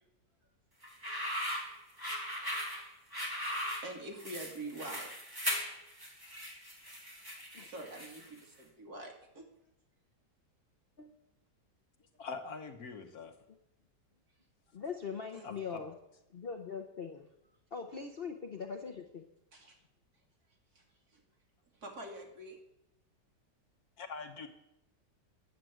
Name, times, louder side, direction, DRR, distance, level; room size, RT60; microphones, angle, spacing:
sound 1, 0.8-8.4, equal, 10° right, 2.5 m, -39 dB
voice 1, 2.3-3.0 3.4-5.2 7.6-9.4 15.3-15.5 19.5-19.8 20.7-21.2 21.7-22.6, right 2 dB, 55° right, 1 dB, 2.8 m, -46 dB
voice 2, 12.2-13.3 15.4-15.8 24.0-24.5, left 4 dB, 60° left, 5 dB, 1.6 m, -43 dB
voice 3, 14.7-15.9 16.3-17.3 17.7-19.2, left 6 dB, 45° left, 4 dB, 0.8 m, -41 dB
9.8 x 7.6 x 9.1 m, 0.83 s
omnidirectional pair, 1.9 m